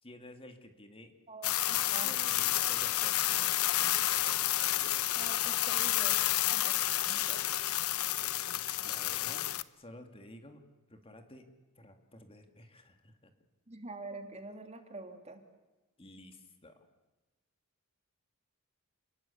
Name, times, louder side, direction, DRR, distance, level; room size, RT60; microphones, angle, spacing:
voice 1, 0.0-1.1 1.7-4.1 8.8-10.6 10.9-11.5 11.8-13.3 16.0-16.9, left 1 dB, 25° left, 6 dB, 2.4 m, -52 dB
sound 1, 1.4-9.6, left 14 dB, 75° left, 0.9 m, -30 dB
voice 2, 5.2-6.2 6.5-7.4 13.7-15.4, right 2 dB, 30° right, 6 dB, 2.7 m, -46 dB
29.0 x 21.0 x 8.5 m, 1.1 s
head